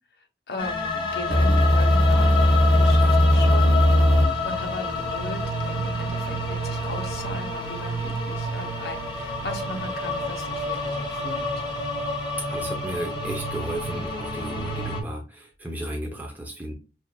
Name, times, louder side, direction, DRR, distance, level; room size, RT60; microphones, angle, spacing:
voice 1, 0.2-4.2 4.4-11.5, left 2 dB, 65° left, 4 dB, 0.9 m, -37 dB
sound 1, 0.6-15.0, left 2 dB, 25° left, 1.0 m, -29 dB
sound 2, 1.3-7.2, equal, 75° right, 1.1 m, -20 dB
voice 2, 12.4-16.7, right 1 dB, 10° right, 0 dB, 0.6 m, -34 dB
5.6 x 2.5 x 2.2 m, 0.32 s
head